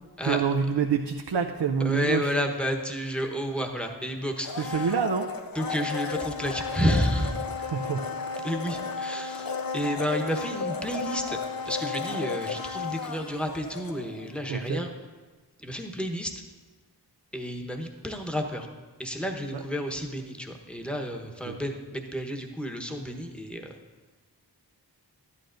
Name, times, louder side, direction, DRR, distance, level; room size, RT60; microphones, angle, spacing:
voice 1, 0.2-2.3 4.6-5.3 7.6-8.4 14.5-14.8 19.5-19.6 21.5-21.6, right 6 dB, 85° right, 3 dB, 0.6 m, -27 dB
voice 2, 1.8-4.7 5.5-7.4 8.4-11.4 11.6-14.9 15.6-16.3 17.3-18.7 19.0-23.7, equal, 5° left, 2 dB, 1.1 m, -31 dB
Domestic sounds home sounds, 4.4-14.4 14.7-14.8, left 5 dB, 60° left, 0.7 m, -34 dB
13.0 x 11.0 x 2.6 m, 1.3 s
wide cardioid pair, 45°, 40 cm